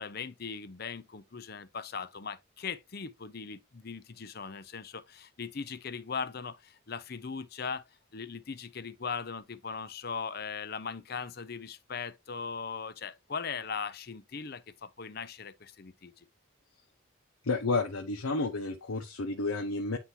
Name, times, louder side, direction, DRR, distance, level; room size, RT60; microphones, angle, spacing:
voice 1, 0.0-7.8 8.1-16.3, left 5 dB, 50° left, 0.6 m, -39 dB
voice 2, 17.4-20.0, left 3 dB, 90° left, 0.8 m, -31 dB
9.6 x 3.8 x 2.8 m
head